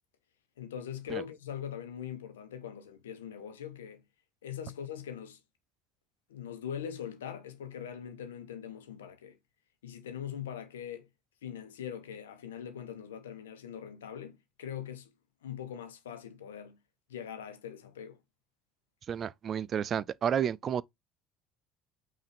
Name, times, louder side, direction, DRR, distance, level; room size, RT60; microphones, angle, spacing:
voice 1, 0.6-4.0 4.4-5.4 6.3-9.4 9.8-11.1 11.4-15.1 15.4-16.8 17.1-18.2, left 9 dB, 85° left, 0.9 m, -42 dB
voice 2, 19.1-20.8, right 8 dB, 45° right, 0.3 m, -31 dB
5.5 x 2.6 x 3.4 m
hypercardioid pair, 70°, 0 cm